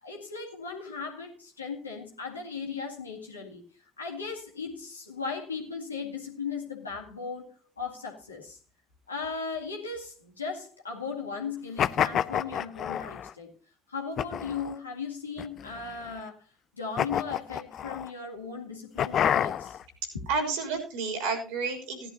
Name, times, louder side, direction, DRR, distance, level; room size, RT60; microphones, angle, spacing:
voice 1, 0.0-3.6 4.0-8.6 9.1-13.5 13.9-16.4 16.7-19.8 20.1-20.2, left 5 dB, 90° left, 0 dB, 2.1 m, -37 dB
sound 1, 11.8-13.3 14.2-14.7 15.4-16.1 17.0-18.1 19.0-19.8, left 9 dB, 50° left, 0.5 m, -29 dB
voice 2, 20.0-22.1, right 4 dB, 70° right, 3 dB, 3.7 m, -31 dB
16.5 x 11.0 x 2.9 m, 0.36 s
figure-of-eight pair, 55°, 0 cm